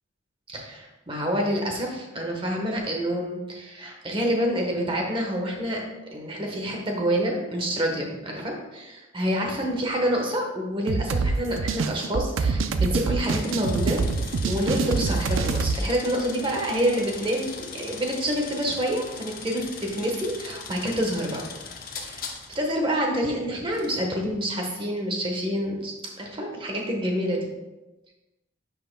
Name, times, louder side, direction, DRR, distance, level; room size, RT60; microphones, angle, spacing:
voice 1, 0.5-5.8 6.1-14.0 14.4-21.5 22.0-27.4, equal, 25° right, 1 dB, 1.2 m, -27 dB
sound 1, 10.9-15.8, right 4 dB, 80° right, 0.5 m, -25 dB
sound 2, 13.2-22.8 23.7-23.9, left 5 dB, 50° left, 0.9 m, -40 dB
10.0 x 5.7 x 2.2 m, 1.1 s
head